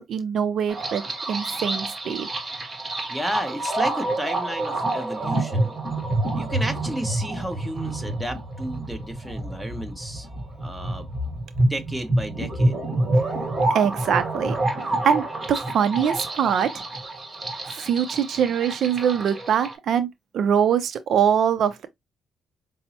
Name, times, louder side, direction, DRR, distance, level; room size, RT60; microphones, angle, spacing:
voice 1, 0.0-2.3 13.7-14.6 15.0-16.8 17.6-20.1 20.3-21.9, right 8 dB, 65° right, 0.4 m, -23 dB
sound 1, 0.7-19.7, right 2 dB, 30° right, 1.2 m, -27 dB
voice 2, 3.1-5.7 6.3-10.3 10.6-11.1 11.7-12.8, right 1 dB, 5° right, 0.9 m, -32 dB
5.2 x 2.0 x 2.8 m
cardioid pair, 90°, 0 cm